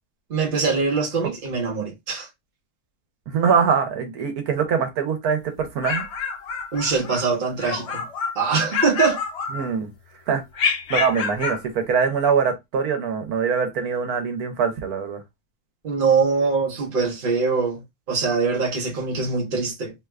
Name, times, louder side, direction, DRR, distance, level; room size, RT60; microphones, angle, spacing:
voice 1, 0.3-2.3 6.7-8.1 8.4-9.2 15.8-19.9, right 4 dB, 40° right, 1.0 m, -23 dB
voice 2, 3.3-6.0 9.5-9.9 10.3-10.4 10.9-15.2, right 6 dB, 85° right, 1.3 m, -23 dB
sound 1, 5.6-7.2 7.6-8.4 8.7-10.0 10.5-11.6, left 5 dB, 60° left, 0.7 m, -27 dB
3.0 x 2.4 x 3.2 m
omnidirectional pair, 1.5 m